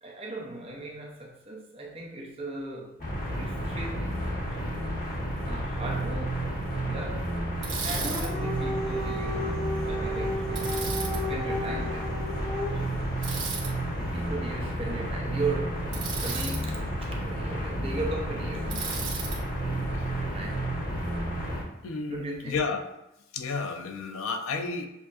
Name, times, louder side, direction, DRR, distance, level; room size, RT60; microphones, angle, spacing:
voice 1, 0.0-3.0 3.4-4.9 5.4-12.1 12.5-12.9 14.0-20.7 22.1-22.5, right 2 dB, 30° right, -2 dB, 0.7 m, -38 dB
sound 1, 3.0-21.6, right 1 dB, 45° left, 1.4 m, -31 dB
Bicycle, 7.6-8.3 10.6-11.2 13.2-13.7 15.9-16.6 18.7-19.4, right 5 dB, 60° right, 1.1 m, -34 dB
Dog, 7.8-13.0, equal, 20° left, 0.8 m, -34 dB
voice 2, 21.8-22.8 23.3-24.9, left 4 dB, 90° left, 5 dB, 0.6 m, -31 dB
7.1 x 2.6 x 2.5 m, 0.90 s
head